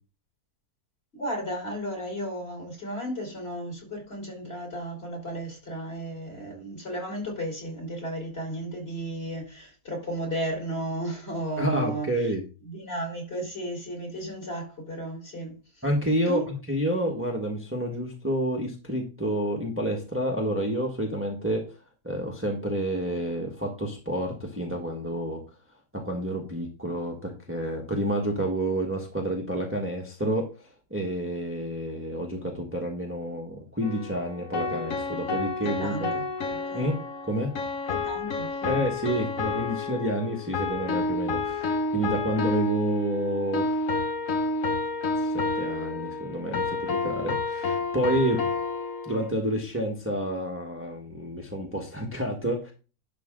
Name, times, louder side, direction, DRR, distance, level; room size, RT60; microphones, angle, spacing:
voice 1, 1.1-12.3 12.6-15.6 16.3-16.5 35.6-36.2 36.5-36.9 37.9-38.7, right 1 dB, 40° left, 4.2 m, -34 dB
voice 2, 11.6-12.4 15.8-21.6 22.0-25.4 25.9-30.5 30.9-36.1 36.7-36.9 37.3-37.5 38.6-43.9 45.2-48.4 49.0-52.7, right 1 dB, 10° right, 1.6 m, -29 dB
sound 1, 33.8-49.3, left 3 dB, 55° left, 1.5 m, -30 dB
11.5 x 5.5 x 3.8 m
omnidirectional pair, 1.6 m